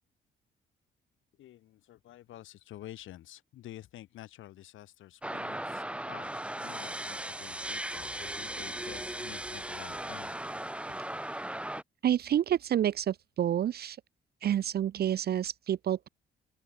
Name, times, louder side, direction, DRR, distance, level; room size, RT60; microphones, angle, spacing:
voice 1, 1.4-10.4, left 13 dB, 80° left, 1.8 m, -49 dB
sound 1, 5.2-11.8, right 1 dB, 5° right, 1.7 m, -37 dB
voice 2, 12.0-14.0 14.4-16.1, right 10 dB, 50° right, 0.6 m, -28 dB
open air
cardioid pair, 90°, 20 cm